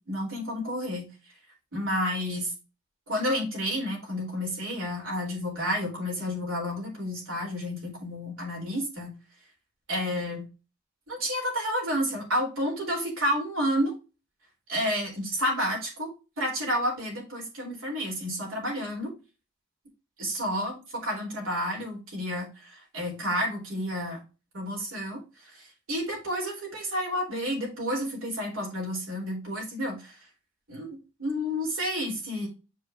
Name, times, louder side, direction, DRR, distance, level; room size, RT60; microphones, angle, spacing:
voice 1, 0.1-1.0 1.7-2.5 3.1-9.1 9.9-10.5 11.1-14.0 14.7-16.1 16.4-19.1 20.2-24.2 24.5-30.3 30.7-32.5, equal, 80° right, -1 dB, 4.1 m, -30 dB
7.6 x 4.7 x 2.8 m, 0.29 s
head